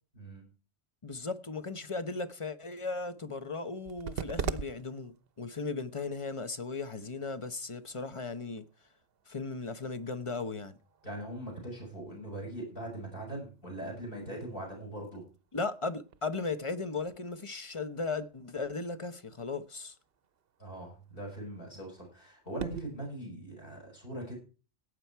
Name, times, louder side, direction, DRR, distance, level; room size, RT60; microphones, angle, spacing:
voice 1, 1.0-8.6 9.3-10.8 15.5-19.9, left 3 dB, 30° left, 0.9 m, -36 dB
sound 1, 3.7-22.8, right 7 dB, 55° right, 0.9 m, -47 dB
voice 2, 11.0-15.2 20.6-24.4, right 1 dB, 45° left, 6.7 m, -41 dB
17.5 x 8.4 x 4.6 m
omnidirectional pair, 1.3 m